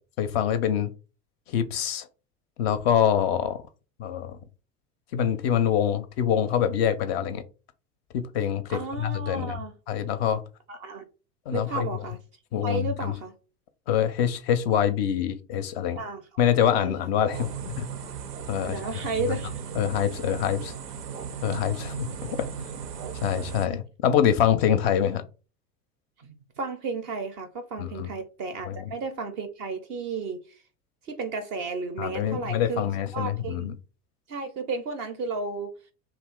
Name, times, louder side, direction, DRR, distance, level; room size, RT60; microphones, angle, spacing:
voice 1, 0.2-0.9 1.5-2.1 2.6-3.6 4.0-4.4 5.1-7.4 8.1-9.6 9.9-10.4 11.5-11.9 12.5-13.1 13.9-16.0 16.4-17.9 18.5-18.8 19.2-19.4 19.8-20.7 21.4-22.1 22.4-22.5 23.1-25.2 27.8-28.1 28.7-28.8 32.0-33.8, left 9 dB, 45° left, 0.4 m, -25 dB
voice 2, 8.7-9.8 10.7-11.0 11.5-12.2 12.6-13.3 16.0-16.2 16.8-16.9 18.6-19.5 24.7-24.8 26.2-30.6 31.0-32.8 33.1-33.7 34.3-35.7, right 4 dB, 30° right, 0.4 m, -33 dB
sound 1, 17.3-23.7, right 6 dB, 80° right, 0.5 m, -36 dB
2.8 x 2.3 x 3.6 m
figure-of-eight pair, 75°, 47 cm